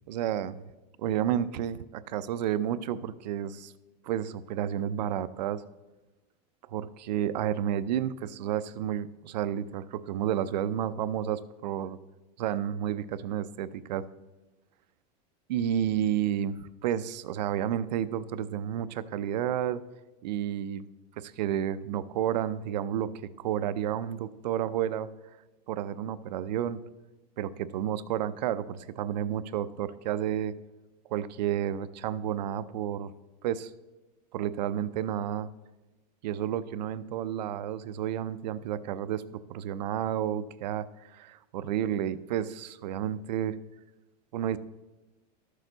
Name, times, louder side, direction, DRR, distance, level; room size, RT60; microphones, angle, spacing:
voice 1, 0.1-0.6 1.0-3.7 4.0-5.6 6.7-12.0 12.4-14.1 15.5-19.8 20.2-20.8 21.2-23.1 23.4-25.1 25.7-26.8 27.4-30.5 31.1-33.1 33.4-33.7 34.3-35.5 36.2-40.9 41.1-43.6 44.3-44.6, right 10 dB, 85° right, 14 dB, 0.6 m, -31 dB
13.0 x 6.5 x 3.9 m, 1.1 s
supercardioid pair, 165°, 21 cm